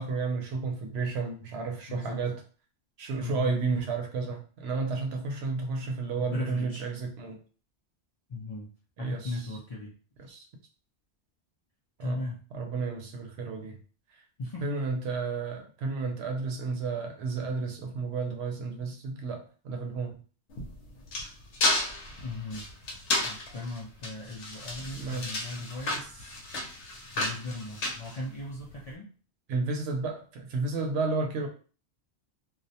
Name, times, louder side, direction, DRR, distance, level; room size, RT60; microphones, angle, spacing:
voice 1, 0.0-2.4 3.0-7.4 9.0-9.3 10.2-10.5 12.0-12.2 12.5-13.8 14.6-20.1 25.0-25.5 29.5-31.5, right 4 dB, 70° right, 4 dB, 0.8 m, -32 dB
voice 2, 1.9-2.2 3.2-3.5 6.2-6.9 8.3-8.7 9.0-10.0 12.0-12.4 14.4-14.7 22.2-22.7 23.2-26.4 27.1-29.1, left 2 dB, 55° left, -4 dB, 0.4 m, -37 dB
sound 1, 20.5-28.8, left 2 dB, 85° left, 0.9 m, -32 dB
2.3 x 2.1 x 2.6 m, 0.38 s
omnidirectional pair, 1.1 m